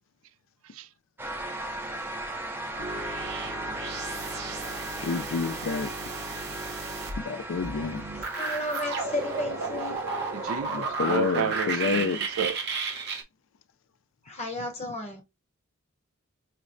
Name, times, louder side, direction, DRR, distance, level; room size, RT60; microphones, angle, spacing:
sound 1, 1.2-12.6, right 1 dB, 10° right, 0.5 m, -38 dB
sound 2, 2.8-13.2, right 4 dB, 50° right, 0.8 m, -33 dB
voice 1, 5.0-5.9 7.3-8.0 10.7-12.2, left 5 dB, 65° left, 0.4 m, -29 dB
voice 2, 8.4-10.0 14.2-15.2, left 2 dB, 30° left, 0.8 m, -33 dB
voice 3, 10.3-10.7 11.0-12.6, right 7 dB, 75° right, 0.4 m, -31 dB
5.7 x 2.0 x 2.5 m
head